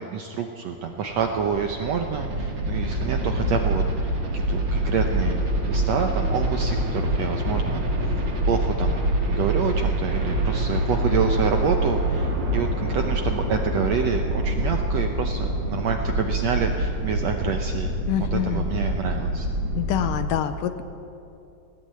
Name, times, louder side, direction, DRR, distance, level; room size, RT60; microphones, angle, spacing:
voice 1, 0.0-7.8 8.4-17.9 18.2-19.5, right 6 dB, 70° right, 4 dB, 1.6 m, -28 dB
sound 1, 0.9-20.3, right 1 dB, 35° right, 2.3 m, -25 dB
voice 2, 18.1-18.7 19.8-20.8, left 11 dB, 80° left, 10 dB, 2.2 m, -26 dB
19.0 x 17.0 x 8.7 m, 2.6 s
omnidirectional pair, 4.1 m